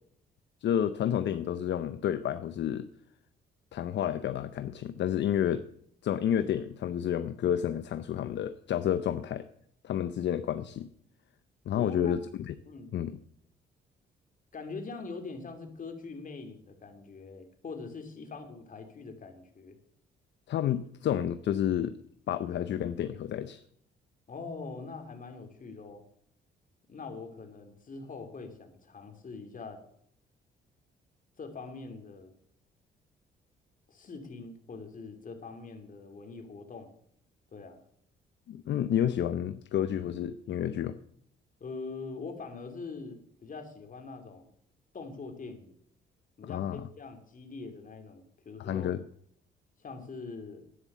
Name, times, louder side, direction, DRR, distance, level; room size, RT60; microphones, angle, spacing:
voice 1, 0.6-2.9 3.7-5.6 6.0-9.5 9.8-10.9 11.7-12.5 12.9-13.2 20.5-22.0 22.3-23.6 38.5-41.0 46.5-46.8 48.6-49.0, left 10 dB, 65° left, 11 dB, 0.7 m, -30 dB
voice 2, 11.7-12.1 12.6-12.9 14.5-19.8 24.3-26.0 26.9-29.8 31.4-32.3 33.9-36.9 37.5-37.8 41.6-44.5 44.9-45.7 46.4-48.9 49.8-50.6, left 4 dB, 40° left, 5 dB, 2.9 m, -43 dB
11.0 x 10.0 x 6.9 m, 0.68 s
cardioid pair, 90°, 20 cm